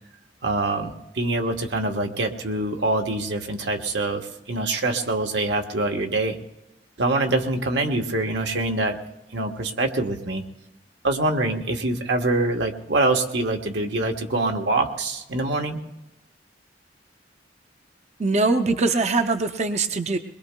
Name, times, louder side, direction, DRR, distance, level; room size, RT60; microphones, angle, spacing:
voice 1, 0.4-6.4 7.0-9.0 9.3-10.4 11.0-15.8, right 2 dB, 90° right, 3 dB, 1.2 m, -25 dB
voice 2, 18.2-20.2, right 3 dB, 40° right, 7 dB, 0.5 m, -22 dB
22.0 x 21.0 x 2.2 m, 1.0 s
head